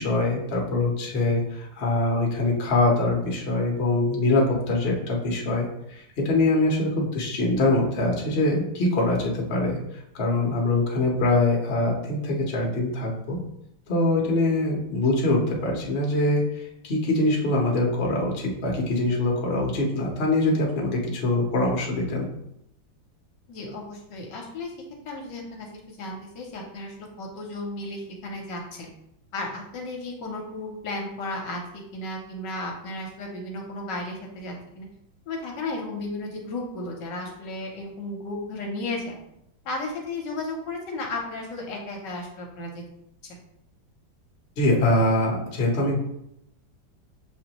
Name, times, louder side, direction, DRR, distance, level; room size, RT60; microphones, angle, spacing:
voice 1, 0.0-13.4 13.9-22.3 44.6-46.0, left 2 dB, 45° left, -1 dB, 0.8 m, -23 dB
voice 2, 23.5-24.7 25.1-28.9 29.3-31.6 31.9-34.9 35.3-39.2 39.6-42.8 43.2-43.4, left 2 dB, 70° left, 1 dB, 1.3 m, -34 dB
6.7 x 2.6 x 2.9 m, 0.79 s
omnidirectional pair, 2.2 m